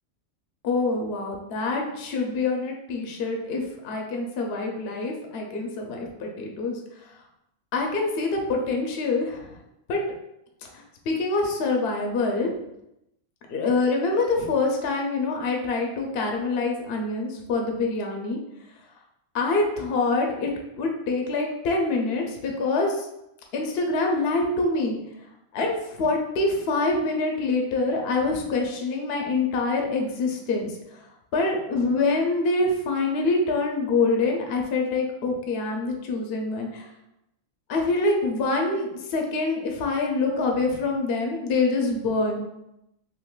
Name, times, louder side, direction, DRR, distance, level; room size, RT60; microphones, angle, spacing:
voice 1, 0.6-7.2 7.7-9.6 9.9-10.0 10.7-12.5 13.5-18.4 19.3-23.1 23.5-25.2 25.5-31.1 31.3-36.9 37.7-42.5, left 3 dB, 65° left, 1 dB, 0.7 m, -25 dB
3.6 x 2.6 x 2.3 m, 0.85 s
omnidirectional pair, 1.4 m